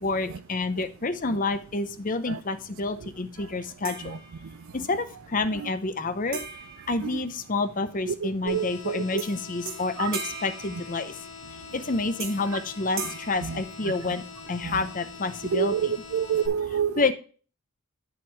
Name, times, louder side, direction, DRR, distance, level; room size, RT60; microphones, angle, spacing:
voice 1, 0.0-4.2 4.7-6.4 6.9-11.2 11.7-14.2 14.5-15.9 17.0-17.1, left 3 dB, 35° left, 0.7 m, -28 dB
sound 1, 3.8-4.8 6.3-7.9 9.2-9.4 9.7-11.5 12.2-12.6 13.0-14.4, right 5 dB, 40° right, 1.3 m, -39 dB
voice 2, 8.2-9.2 10.0-10.1 13.4-13.6 14.6-14.8 15.5-16.9, right 7 dB, 65° right, 0.4 m, -27 dB
sound 2, 8.5-16.5, left 5 dB, 50° left, 1.3 m, -44 dB
8.3 x 7.0 x 3.4 m
head